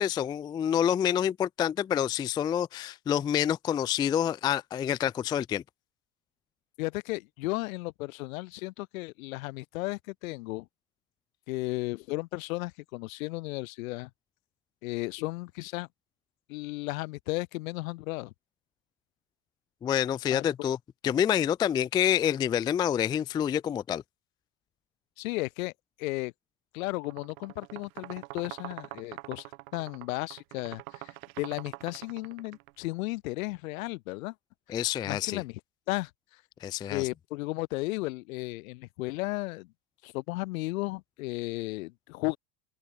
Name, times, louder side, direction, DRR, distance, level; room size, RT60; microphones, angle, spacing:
voice 1, 0.0-5.6 19.8-20.8 21.0-24.0 34.7-35.4 36.6-37.1, left 9 dB, 10° left, 0.3 m, -27 dB
voice 2, 6.8-10.7 11.5-14.1 14.8-15.9 16.5-18.3 20.3-20.4 25.2-25.7 26.0-26.3 26.7-29.4 29.7-34.3 35.1-35.6 35.9-36.1 36.9-39.7 40.0-42.4, left 22 dB, 75° left, 2.4 m, -34 dB
sound 1, 27.0-32.7, right 21 dB, 75° right, 1.9 m, -44 dB
open air
supercardioid pair, 155°, 42 cm